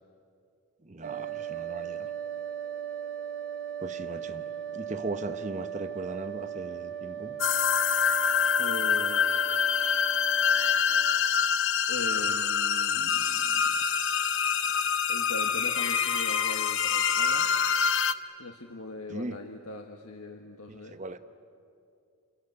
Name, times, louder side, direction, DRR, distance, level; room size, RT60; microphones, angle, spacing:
voice 1, 0.8-2.1 3.8-4.4 4.7-7.4 19.1-19.4 20.7-21.2, right 2 dB, 35° right, 10 dB, 0.9 m, -38 dB
sound 1, 1.0-10.7, right 9 dB, 50° right, 3.2 m, -38 dB
sound 2, 7.4-18.1, left 7 dB, 55° left, 0.8 m, -26 dB
voice 2, 8.6-9.7 11.9-13.8 15.1-17.5 18.4-21.0, left 2 dB, 80° left, 3 dB, 1.5 m, -40 dB
29.0 x 21.5 x 9.6 m, 2.5 s
head